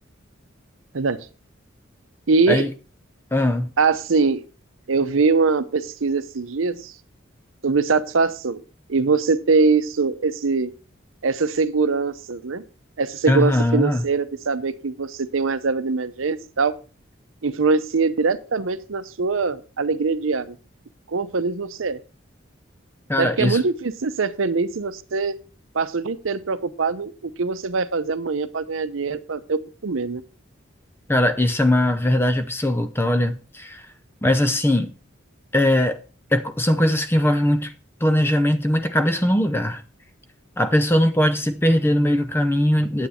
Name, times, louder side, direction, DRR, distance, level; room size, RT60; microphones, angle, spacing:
voice 1, 0.9-1.3 2.3-2.7 3.8-4.4 4.9-6.9 7.6-8.6 8.9-10.7 11.2-12.6 13.0-16.8 17.4-20.6 21.1-22.0 23.2-25.3 25.7-27.1 27.4-30.2, right 4 dB, 85° right, 0.7 m, -22 dB
voice 2, 3.3-3.7 13.3-14.0 23.1-23.6 31.1-33.8 34.2-34.9 35.5-36.0 36.3-37.7 38.0-39.8 40.6-43.1, left 1 dB, 10° left, 0.6 m, -20 dB
9.3 x 8.1 x 4.3 m
head